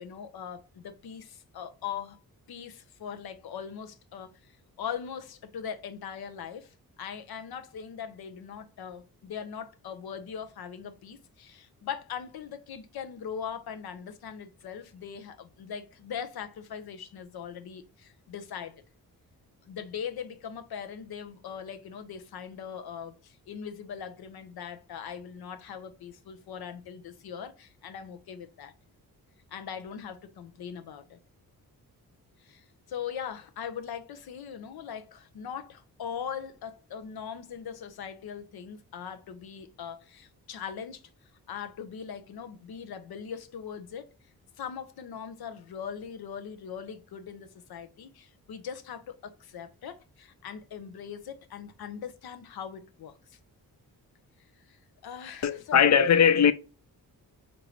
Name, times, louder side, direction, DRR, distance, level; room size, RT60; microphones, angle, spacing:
voice 1, 0.0-2.2 2.5-4.5 4.8-18.8 19.6-28.7 29.5-31.2 32.4-41.1 41.5-44.1 44.6-53.4 54.7-54.8 55.0-55.9 56.2-56.3, left 7 dB, 85° left, 0.7 m, -40 dB
voice 2, 55.4-56.5, left 7 dB, 50° left, 0.5 m, -20 dB
4.5 x 2.6 x 3.1 m
cardioid pair, 85°, 36 cm